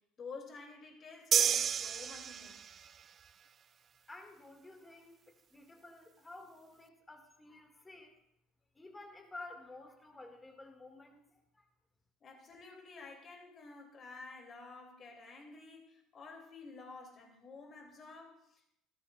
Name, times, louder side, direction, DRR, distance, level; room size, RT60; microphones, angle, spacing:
voice 1, 0.2-2.9 12.2-18.6, left 4 dB, 40° left, 2 dB, 3.1 m, -51 dB
sound 1, 1.3-2.9, right 8 dB, 40° right, 0.4 m, -30 dB
voice 2, 4.1-8.1 8.7-11.7, left 2 dB, 15° left, 4 dB, 2.3 m, -52 dB
16.0 x 12.5 x 2.6 m, 0.77 s
hypercardioid pair, 65°, 0 cm